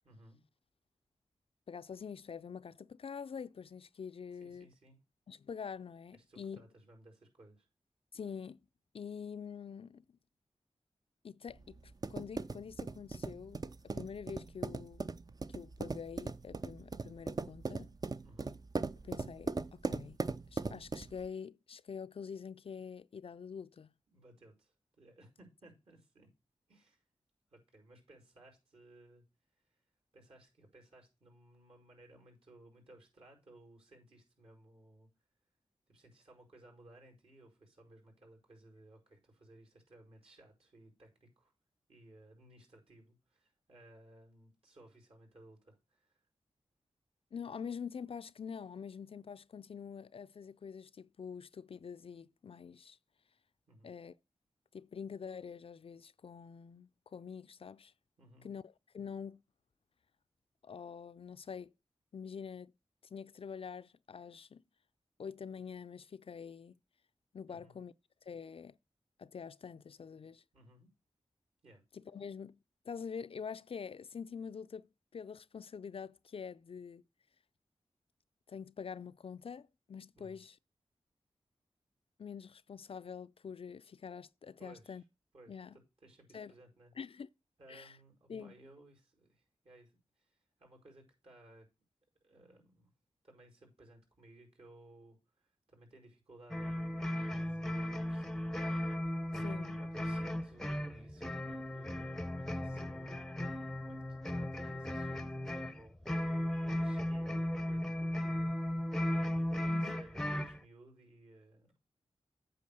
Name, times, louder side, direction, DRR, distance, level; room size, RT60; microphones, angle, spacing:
voice 1, 0.0-0.4 4.3-5.0 6.1-7.7 18.2-18.6 24.1-26.3 26.7-27.0 27.5-29.2 30.1-35.1 35.9-41.5 41.9-46.2 53.7-53.9 58.2-58.5 67.5-67.8 70.5-70.9 71.6-71.8 80.2-80.4 84.6-85.0 85.3-86.9 87.6-89.9 90.2-91.7 92.2-92.9 93.2-98.7 99.2-99.5 99.8-109.2 109.5-111.9, right 1 dB, 60° right, 5.1 m, -60 dB
voice 2, 1.7-4.7 5.3-6.6 8.1-8.6 8.9-10.1 11.2-13.6 13.9-15.0 15.5-17.9 19.0-20.2 20.5-23.9 47.3-53.0 53.8-54.1 54.7-57.9 58.4-59.4 60.6-61.7 62.1-62.7 63.1-64.6 65.2-66.8 67.3-67.9 68.3-68.7 69.2-70.4 71.9-72.6 72.8-74.9 75.1-77.0 78.5-80.6 82.2-85.0 85.5-85.8 86.3-86.5 87.0-87.3 87.7-88.0 88.3-88.5 99.4-99.8 109.7-109.9, left 6 dB, 60° left, 0.4 m, -46 dB
sound 1, 11.5-21.3, right 3 dB, 35° right, 0.5 m, -39 dB
sound 2, 96.5-110.6, left 1 dB, 5° left, 0.7 m, -36 dB
8.5 x 4.2 x 6.7 m
cardioid pair, 65°, 11 cm